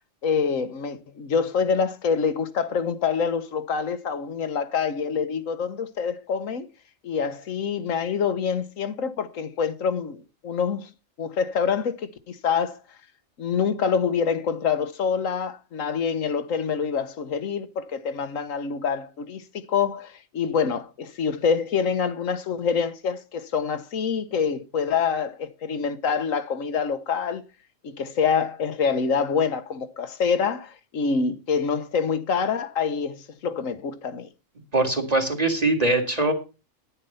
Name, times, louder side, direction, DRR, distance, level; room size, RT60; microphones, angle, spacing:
voice 1, 0.2-6.7 7.0-10.9 11.2-12.8 13.4-27.4 27.8-34.3, left 6 dB, 85° left, 1.4 m, -26 dB
voice 2, 34.7-36.3, right 2 dB, 30° right, 2.0 m, -22 dB
10.5 x 9.8 x 5.4 m
omnidirectional pair, 1.3 m